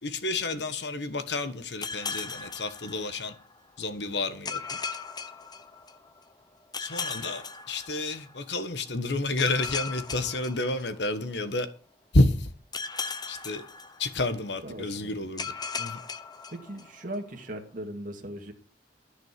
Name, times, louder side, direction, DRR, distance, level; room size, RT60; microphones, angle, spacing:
voice 1, 0.0-3.4 3.8-4.8 6.8-11.7 12.1-12.5 13.3-13.6 14.0-16.0, left 2 dB, 75° left, 1.3 m, -29 dB
sound 1, 1.8-3.6 4.5-6.2 6.7-8.5 9.4-11.4 12.7-14.5 15.4-17.2, left 5 dB, 25° left, 1.0 m, -37 dB
voice 2, 14.6-15.3 16.5-18.5, right 1 dB, 50° right, 2.2 m, -38 dB
14.0 x 6.4 x 7.5 m
head